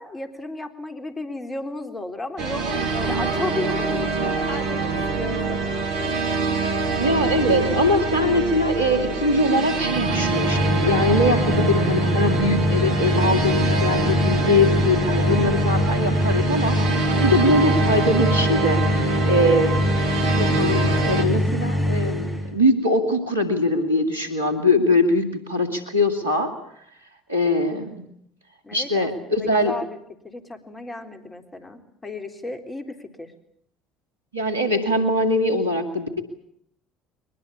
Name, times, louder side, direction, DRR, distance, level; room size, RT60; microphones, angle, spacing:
voice 1, 0.0-5.8 28.6-30.0 30.2-33.3, left 2 dB, 20° left, 6 dB, 3.9 m, -34 dB
sound 1, 2.4-21.3, right 4 dB, 60° right, 3.0 m, -25 dB
voice 2, 6.9-16.8 17.2-18.8 19.3-19.8 20.3-26.5 27.3-28.0 28.7-29.7 34.3-36.2, left 1 dB, 85° right, 5 dB, 2.5 m, -22 dB
sound 2, 9.9-22.5, left 1 dB, 5° left, 6.7 m, -23 dB
23.0 x 21.0 x 8.7 m, 0.70 s
figure-of-eight pair, 55°, 0 cm